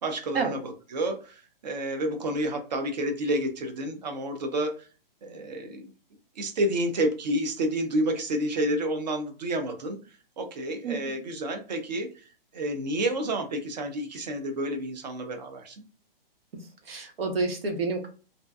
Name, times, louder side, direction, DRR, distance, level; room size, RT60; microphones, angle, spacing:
voice 1, 0.0-4.9 5.2-5.8 6.4-10.0 10.4-15.8, right 1 dB, 45° right, 6 dB, 0.6 m, -30 dB
voice 2, 10.8-11.1 16.5-18.1, right 4 dB, 80° right, 3 dB, 0.9 m, -30 dB
2.6 x 2.1 x 2.2 m, 0.36 s
hypercardioid pair, 170°, 29 cm